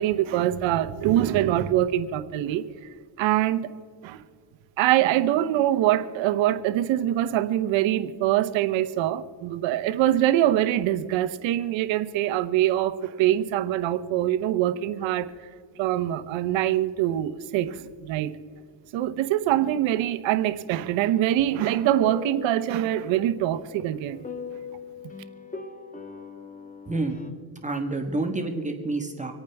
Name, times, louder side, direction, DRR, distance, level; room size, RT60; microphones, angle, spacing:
voice 1, 0.0-2.6 3.2-3.7 4.0-4.2 4.8-15.3 15.8-18.3 18.9-24.2, right 12 dB, 80° right, 12 dB, 0.9 m, -24 dB
sound 1, 22.0-27.3, left 5 dB, 15° left, 1.4 m, -40 dB
voice 2, 26.9-27.2 27.6-29.3, right 2 dB, 15° right, 3 dB, 1.4 m, -28 dB
26.5 x 9.0 x 3.5 m, 2.1 s
cardioid pair, 95°, 46 cm